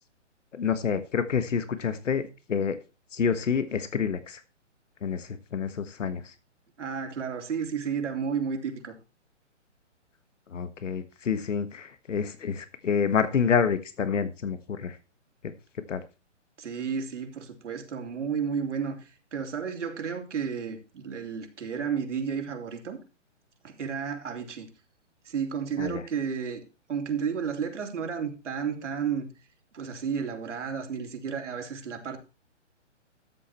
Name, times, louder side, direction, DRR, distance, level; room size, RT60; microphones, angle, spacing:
voice 1, 0.5-2.8 3.1-4.4 5.0-6.3 10.5-15.0 15.9-16.0 25.8-26.0, left 6 dB, 80° left, 1.5 m, -28 dB
voice 2, 6.8-8.9 16.6-23.0 23.6-24.7 25.2-26.6 26.9-29.3 29.7-32.2, right 6 dB, 70° right, 3.2 m, -32 dB
13.5 x 7.4 x 4.4 m
hypercardioid pair, 150°, 37 cm